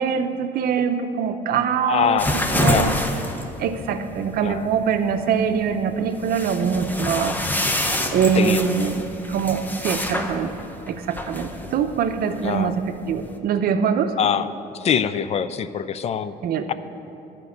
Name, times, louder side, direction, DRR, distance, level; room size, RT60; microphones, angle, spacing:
voice 1, 0.0-2.2 2.5-2.9 3.6-7.4 8.1-10.5 10.9-14.1 16.4-16.7, right 7 dB, 65° right, 8 dB, 0.7 m, -23 dB
voice 2, 1.9-3.0 4.4-4.7 8.4-8.6 12.4-12.7 14.2-14.5 14.7-16.3, left 8 dB, 40° left, 14 dB, 0.4 m, -24 dB
sound 1, 2.2-13.4, left 1 dB, 10° left, 0.8 m, -28 dB
11.0 x 5.3 x 8.2 m, 2.8 s
cardioid pair, 110°, 17 cm